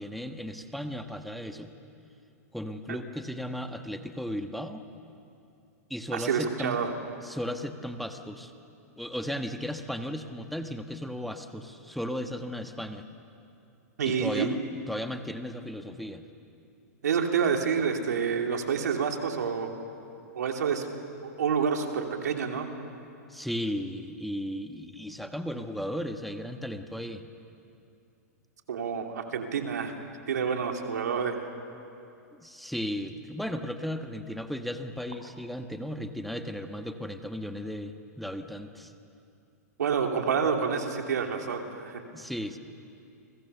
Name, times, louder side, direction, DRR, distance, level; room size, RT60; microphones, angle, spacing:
voice 1, 0.0-1.7 2.5-4.8 5.9-6.8 7.2-8.5 9.0-13.1 14.0-14.6 14.9-16.2 23.3-27.2 32.4-38.9 42.1-42.6, equal, ahead, 6 dB, 1.2 m, -35 dB
voice 2, 6.1-6.9 14.0-14.5 17.0-19.7 20.3-20.9 21.2-22.7 28.7-29.9 30.3-31.4 39.8-42.0, right 6 dB, 80° right, 3 dB, 3.0 m, -28 dB
30.0 x 22.5 x 7.0 m, 2.6 s
hypercardioid pair, 120°, 9 cm